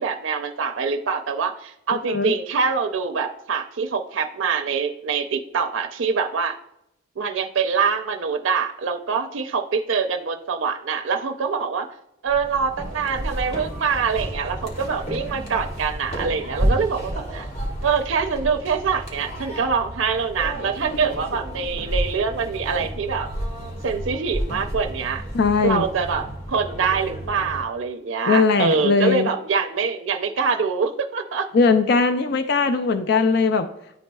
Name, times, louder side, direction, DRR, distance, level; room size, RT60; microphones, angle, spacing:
voice 1, 0.0-6.6 7.2-11.9 12.2-17.5 17.8-23.3 23.8-25.2 25.6-31.5, right 5 dB, 75° right, 6 dB, 0.5 m, -24 dB
sound 1, 12.3-27.6, right 1 dB, 35° left, 1.5 m, -31 dB
voice 2, 25.3-25.9 28.3-29.3 31.5-33.7, left 4 dB, 55° left, 8 dB, 0.4 m, -19 dB
11.0 x 4.2 x 2.3 m, 0.82 s
head